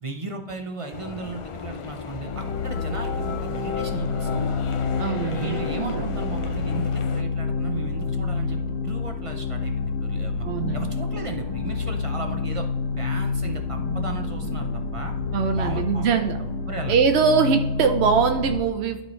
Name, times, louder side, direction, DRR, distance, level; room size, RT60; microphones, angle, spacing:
voice 1, 0.0-4.5 5.2-10.5 10.7-12.7 13.0-15.2 15.5-16.3 16.7-17.0, right 3 dB, 35° right, 4 dB, 0.8 m, -36 dB
sound 1, 0.9-7.2, left 5 dB, 45° left, 0.4 m, -36 dB
sound 2, 2.1-18.6, left 4 dB, 80° left, 0.9 m, -28 dB
sound 3, 4.9-10.1 10.4-16.7, left 3 dB, 25° left, 1.0 m, -41 dB
voice 2, 5.0-6.0 10.4-10.8 15.3-16.4 16.9-19.0, right 6 dB, 85° right, 6 dB, 0.9 m, -22 dB
12.0 x 4.4 x 3.1 m, 1.0 s
omnidirectional pair, 1.1 m